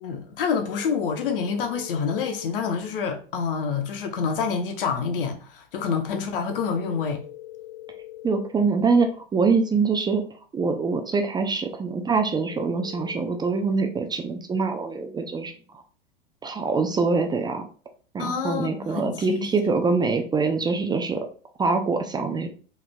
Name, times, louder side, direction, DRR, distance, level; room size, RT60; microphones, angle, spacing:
voice 1, 0.0-7.2 18.2-19.7, left 6 dB, 65° left, 0.9 m, -27 dB
sound 1, 0.6-2.5 6.5-8.5 12.5-13.3, left 14 dB, 90° left, 0.5 m, -42 dB
voice 2, 8.2-10.2 10.5-15.5 16.4-17.7 18.1-21.3 21.6-22.5, right 4 dB, 15° right, 0.4 m, -24 dB
4.7 x 3.4 x 2.2 m
hypercardioid pair, 90°, 29 cm